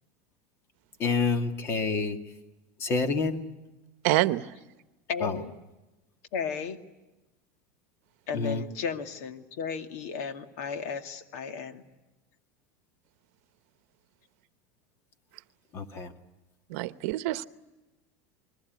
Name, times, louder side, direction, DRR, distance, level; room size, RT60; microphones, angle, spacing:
voice 1, 1.0-2.2 2.8-3.4 5.2-5.4 8.3-8.6 15.7-16.1, left 4 dB, 30° left, 2.1 m, -28 dB
voice 2, 4.0-4.4 16.7-17.4, right 17 dB, 65° right, 1.0 m, -26 dB
voice 3, 5.1-5.5 6.3-6.8 8.3-11.8, left 6 dB, 75° left, 2.2 m, -34 dB
29.0 x 21.5 x 9.4 m
supercardioid pair, 160°, 8 cm